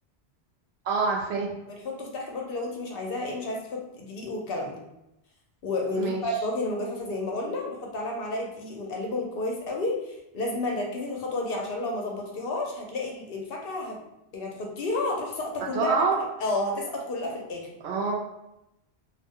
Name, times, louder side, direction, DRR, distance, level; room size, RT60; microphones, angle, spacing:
voice 1, 0.8-1.5 6.0-6.2 15.6-16.2 17.8-18.1, right 4 dB, 75° right, -1 dB, 0.9 m, -26 dB
voice 2, 1.7-4.7 5.6-14.0 14.3-15.9 16.4-17.7, left 2 dB, 65° left, 0 dB, 0.8 m, -31 dB
2.4 x 2.0 x 3.6 m, 0.88 s
omnidirectional pair, 1.1 m